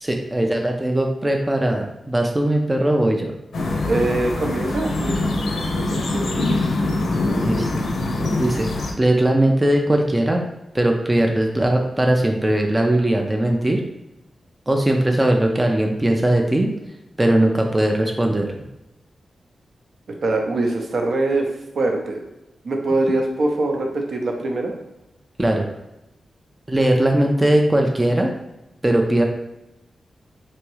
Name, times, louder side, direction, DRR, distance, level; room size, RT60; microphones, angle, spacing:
voice 1, 0.0-3.3 7.4-7.9 8.4-8.7 9.0-10.4 10.7-13.8 14.7-16.7 17.2-18.5 25.4-25.7 26.7-28.3 28.8-29.2, right 1 dB, 15° right, 2 dB, 0.3 m, -19 dB
sound 1, 3.5-8.9, left 2 dB, 80° left, 0.6 m, -23 dB
voice 2, 3.8-6.5 20.2-21.5 21.7-22.2 22.6-24.7, right 2 dB, 65° right, 2 dB, 0.6 m, -23 dB
3.4 x 3.0 x 3.1 m, 0.94 s
wide cardioid pair, 160°, 0 cm